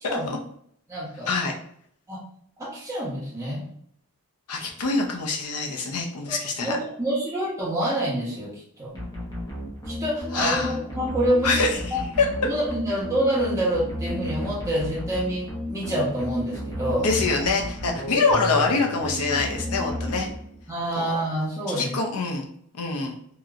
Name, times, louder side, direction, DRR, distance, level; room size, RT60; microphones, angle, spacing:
voice 1, 0.9-1.3 2.1-2.2 2.6-3.6 4.6-4.7 6.3-8.9 9.9-11.6 11.9-12.0 12.4-17.1 20.7-22.0, right 1 dB, 15° right, -7 dB, 1.0 m, -27 dB
voice 2, 4.5-6.8 10.3-10.8 11.4-12.3 17.0-20.3 21.0-21.1 21.8-22.5 22.7-23.2, left 3 dB, 90° left, 2 dB, 0.6 m, -25 dB
sound 1, 8.9-20.8, left 1 dB, 15° left, 0.7 m, -33 dB
3.0 x 2.8 x 2.4 m, 0.67 s
head